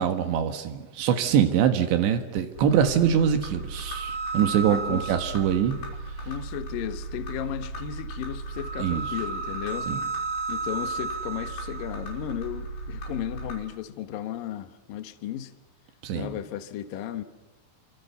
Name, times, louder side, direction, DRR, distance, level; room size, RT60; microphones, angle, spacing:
voice 1, 0.0-5.8 8.8-9.0 9.9-10.0 16.0-16.4, right 8 dB, 85° right, 3.8 m, -24 dB
sound 1, 2.6-13.5, right 3 dB, 90° left, 7.9 m, -34 dB
voice 2, 4.7-5.2 6.2-9.9 10.5-15.5 16.2-17.2, left 11 dB, 65° left, 2.7 m, -34 dB
30.0 x 26.0 x 7.0 m
omnidirectional pair, 5.0 m